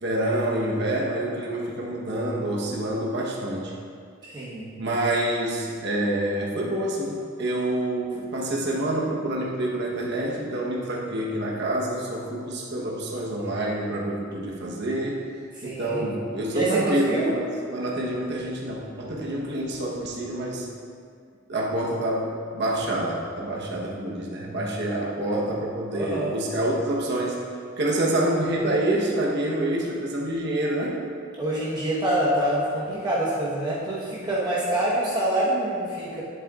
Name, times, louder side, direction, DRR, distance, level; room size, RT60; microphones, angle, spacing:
voice 1, 0.0-3.7 4.8-15.2 15.6-20.7 21.5-27.4 27.8-31.0, right 1 dB, 60° right, -3 dB, 1.1 m, -27 dB
voice 2, 4.2-4.7 15.5-16.0 16.5-17.3 25.9-26.3 31.4-36.2, right 1 dB, 20° right, -8 dB, 1.1 m, -26 dB
11.0 x 7.6 x 2.4 m, 2.2 s
head